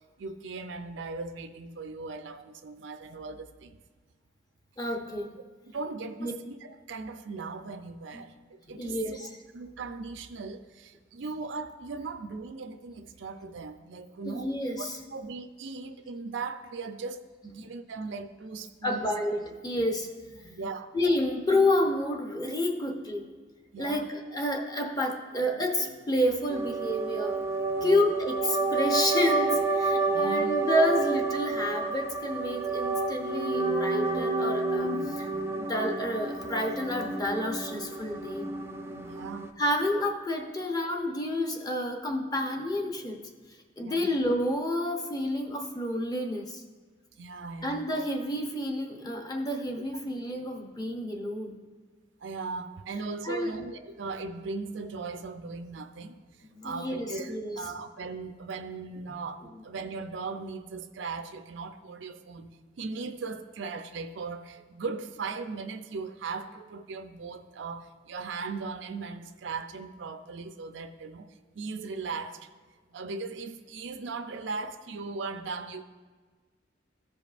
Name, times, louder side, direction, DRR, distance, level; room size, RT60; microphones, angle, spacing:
voice 1, 0.2-3.8 5.6-14.5 14.8-19.0 20.4-20.9 23.7-24.0 27.8-28.1 30.1-30.6 38.9-39.6 43.8-44.1 47.2-47.9 52.2-62.5 62.8-72.5 72.9-75.8, right 4 dB, 80° right, 9 dB, 0.5 m, -38 dB
voice 2, 4.8-5.4 6.2-6.3 8.1-8.2 8.8-9.3 14.2-14.9 18.8-20.5 20.9-23.3 23.8-27.4 27.8-35.3 35.5-38.5 39.6-43.2 43.8-46.6 47.6-51.6 53.2-53.5 56.5-57.6, left 1 dB, 20° left, 3 dB, 0.7 m, -29 dB
sound 1, 26.5-39.5, right 3 dB, 15° right, 0.4 m, -29 dB
14.0 x 5.1 x 2.5 m, 1.4 s
head